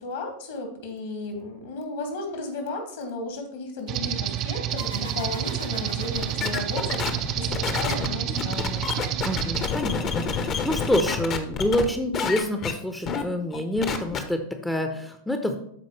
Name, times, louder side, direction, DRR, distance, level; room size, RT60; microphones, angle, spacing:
voice 1, 0.0-8.9, left 3 dB, 55° left, 5 dB, 1.7 m, -34 dB
sound 1, 3.9-9.7, right 11 dB, 35° right, 0.5 m, -29 dB
sound 2, 4.8-8.1, left 1 dB, 85° left, 1.4 m, -42 dB
sound 3, 6.1-11.9 12.1-12.7 13.1-13.2 13.5-14.2, left 6 dB, 30° left, 0.8 m, -28 dB
voice 2, 9.2-15.6, equal, 5° left, 6 dB, 0.7 m, -27 dB
12.5 x 4.3 x 3.1 m, 0.69 s
figure-of-eight pair, 90°, 0 cm